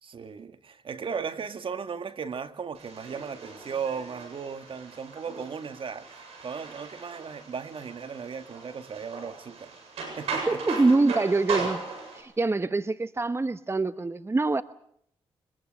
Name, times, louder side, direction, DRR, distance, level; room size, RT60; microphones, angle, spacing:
voice 1, 0.0-9.8 10.2-10.9 11.5-11.7, right 6 dB, 55° right, 1.8 m, -36 dB
sound 1, 2.7-12.2, right 4 dB, 80° right, 7.6 m, -38 dB
voice 2, 10.5-11.8 12.1-14.6, right 3 dB, 25° right, 1.0 m, -25 dB
23.5 x 22.0 x 6.5 m
supercardioid pair, 50°, 11 cm